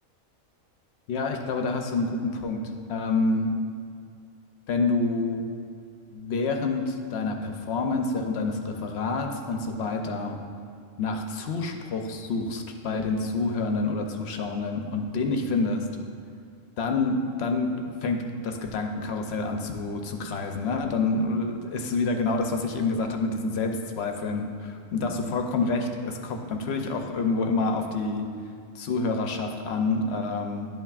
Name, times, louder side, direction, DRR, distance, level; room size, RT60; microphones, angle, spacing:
voice 1, 1.1-2.6 2.9-3.6 4.7-5.4 6.1-10.4 11.0-15.8 16.8-28.3 28.7-30.7, left 3 dB, 65° left, 4 dB, 0.7 m, -28 dB
10.5 x 5.7 x 2.4 m, 2.3 s
omnidirectional pair, 1.4 m